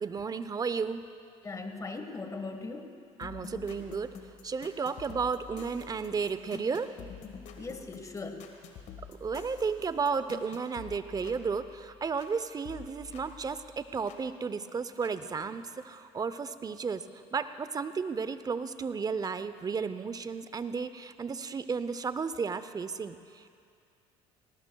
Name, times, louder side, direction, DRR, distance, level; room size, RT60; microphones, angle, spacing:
voice 1, 0.0-1.0 3.2-4.1 4.4-6.9 9.1-17.0 17.3-23.5, right 5 dB, 30° right, 12 dB, 0.7 m, -33 dB
voice 2, 1.4-2.9 7.6-8.4, left 3 dB, 25° left, 6 dB, 1.5 m, -39 dB
sound 1, 3.2-12.4 12.6-14.2 15.0-15.1, left 6 dB, 60° left, 1.5 m, -48 dB
19.5 x 18.0 x 2.3 m, 2.5 s
supercardioid pair, 75°, 13 cm